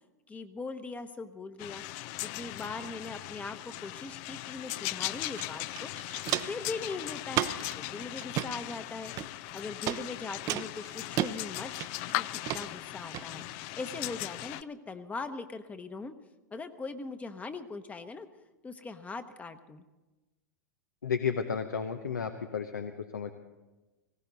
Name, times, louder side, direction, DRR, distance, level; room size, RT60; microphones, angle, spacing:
voice 1, 0.3-1.8 2.2-5.9 6.5-11.7 12.1-16.1 16.5-18.3 18.6-19.8, left 3 dB, 15° left, 9 dB, 0.9 m, -40 dB
sound 1, 1.6-14.6, left 17 dB, 45° left, 0.4 m, -38 dB
Walk footsteps, 5.4-5.5 5.7-6.6 7.3-7.7 8.2-8.5 9.2-9.5 9.9-10.0 10.5-11.3 11.8-12.1 12.5-12.6 13.1-13.2, right 14 dB, 40° right, 0.6 m, -32 dB
voice 2, 21.0-23.3, left 6 dB, 85° left, 7 dB, 0.8 m, -32 dB
19.0 x 16.5 x 4.0 m, 1.1 s
hypercardioid pair, 100°, 10 cm